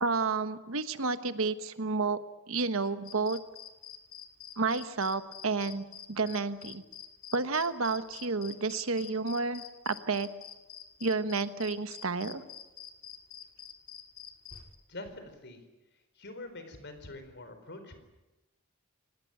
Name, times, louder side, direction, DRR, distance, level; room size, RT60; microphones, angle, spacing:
voice 1, 0.0-2.2 2.5-3.4 4.6-6.8 7.3-10.3 11.0-12.4, right 4 dB, 70° right, 11 dB, 1.2 m, -31 dB
sound 1, 3.0-14.7, left 9 dB, 85° left, 2.2 m, -46 dB
voice 2, 14.9-15.6 15.9-17.9, left 2 dB, 55° left, 8 dB, 4.4 m, -45 dB
27.0 x 18.0 x 9.0 m, 1.1 s
head